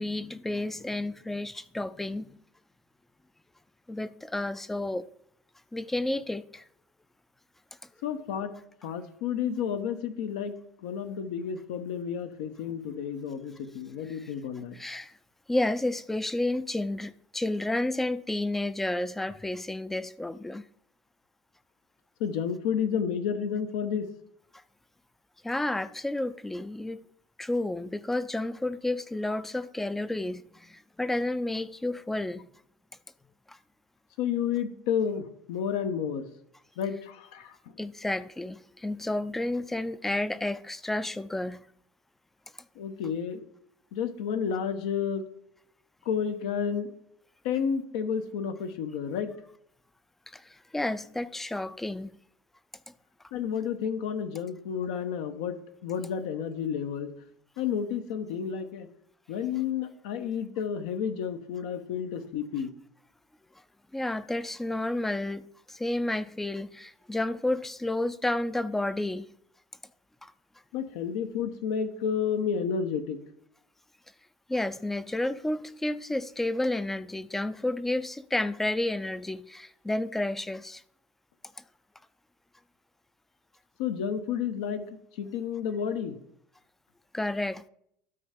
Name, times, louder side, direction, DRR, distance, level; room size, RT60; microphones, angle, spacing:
voice 1, 0.0-2.4 3.9-5.1 5.7-6.6 14.1-14.3 14.7-15.2 15.5-20.6 24.5-24.6 25.4-27.0 27.4-32.5 33.5-33.6 37.8-41.6 50.3-52.2 63.9-69.3 70.2-70.3 74.5-80.8 81.6-81.7 87.1-87.7, left 1 dB, 5° left, 0.4 m, -31 dB
voice 2, 8.0-8.5 8.8-14.8 22.2-24.1 34.2-36.3 36.8-37.5 42.8-43.4 43.9-45.2 46.0-46.9 47.4-49.3 53.3-57.1 57.6-58.9 59.3-62.7 70.7-73.2 83.8-84.9 85.2-86.2, left 7 dB, 80° left, 1.0 m, -31 dB
12.5 x 4.5 x 5.1 m
supercardioid pair, 130°, 4 cm